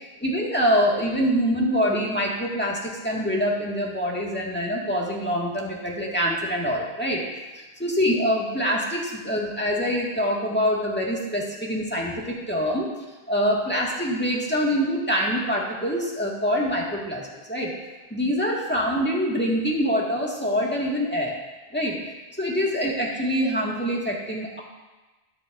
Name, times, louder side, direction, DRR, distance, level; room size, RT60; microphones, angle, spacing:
voice 1, 0.2-7.2 7.5-12.9 13.3-17.7 18.1-21.4 21.7-22.0 22.4-24.6, equal, 10° left, -4 dB, 1.7 m, -25 dB
13.0 x 10.5 x 2.6 m, 1.2 s
omnidirectional pair, 1.1 m